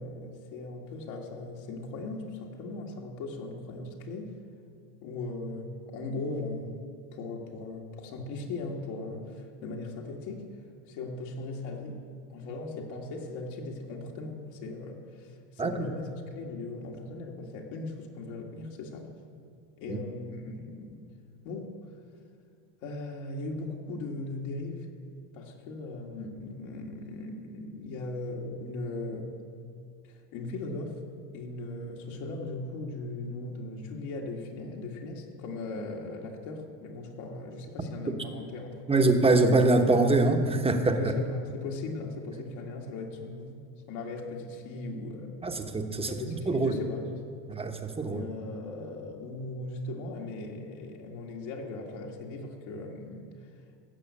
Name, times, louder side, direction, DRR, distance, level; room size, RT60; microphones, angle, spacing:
voice 1, 0.0-4.3 5.0-6.8 7.1-10.4 10.9-12.0 12.3-19.1 19.8-21.1 21.4-21.7 22.8-24.9 25.3-29.3 30.0-31.0 31.3-39.1 40.9-45.6 46.0-47.1 48.0-53.3, left 2 dB, 65° left, -1 dB, 2.1 m, -38 dB
voice 2, 38.9-41.0 45.4-46.8 47.5-48.2, right 2 dB, 10° right, 5 dB, 1.0 m, -24 dB
16.5 x 6.4 x 8.3 m, 2.3 s
supercardioid pair, 120°, 50 cm